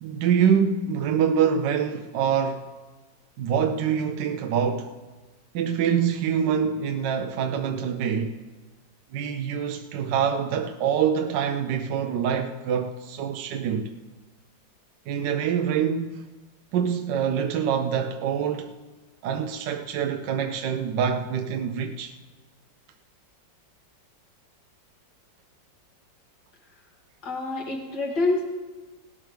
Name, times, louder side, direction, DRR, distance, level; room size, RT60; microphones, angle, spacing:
voice 1, 0.0-2.7 3.4-5.0 5.5-8.4 9.1-13.9 15.1-16.3 16.7-18.8 19.2-22.2, right 7 dB, 75° right, 1.3 m, -25 dB
voice 2, 27.2-28.4, left 2 dB, 80° left, 3.1 m, -26 dB
18.5 x 12.5 x 3.4 m
omnidirectional pair, 2.0 m